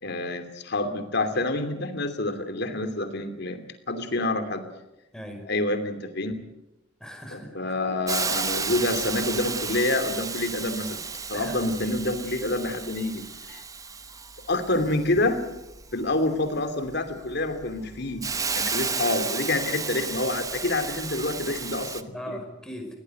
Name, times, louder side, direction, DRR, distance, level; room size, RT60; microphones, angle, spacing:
voice 1, 0.0-3.6 3.9-4.7 5.4-6.4 7.3-11.0 11.3-13.6 14.5-15.4 15.9-18.3 18.5-22.4, left 2 dB, 60° left, 8 dB, 2.8 m, -27 dB
voice 2, 5.1-5.4 7.0-7.7 11.3-11.6 22.1-22.9, equal, 5° left, 4 dB, 5.1 m, -39 dB
Hiss, 8.1-22.0, right 5 dB, 20° right, 1.1 m, -33 dB
22.0 x 18.0 x 7.9 m, 0.93 s
head